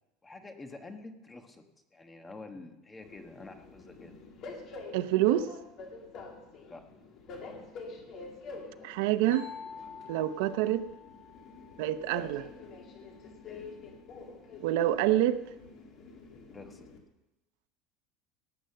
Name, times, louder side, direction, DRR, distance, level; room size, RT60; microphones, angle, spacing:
voice 1, 0.2-1.6 1.9-4.1 6.7-6.8 13.4-13.7 16.5-16.9, left 3 dB, 10° left, 6 dB, 1.2 m, -47 dB
Train, 3.0-17.0, left 3 dB, 40° left, 2.3 m, -47 dB
voice 2, 4.9-5.5 8.8-9.5 10.1-10.8 11.8-12.5 14.6-15.4, right 13 dB, 75° right, 13 dB, 0.7 m, -26 dB
sound 1, 9.3-13.0, left 6 dB, 80° left, 4.0 m, -49 dB
18.0 x 7.9 x 6.7 m, 0.95 s
cardioid pair, 165°, 0 cm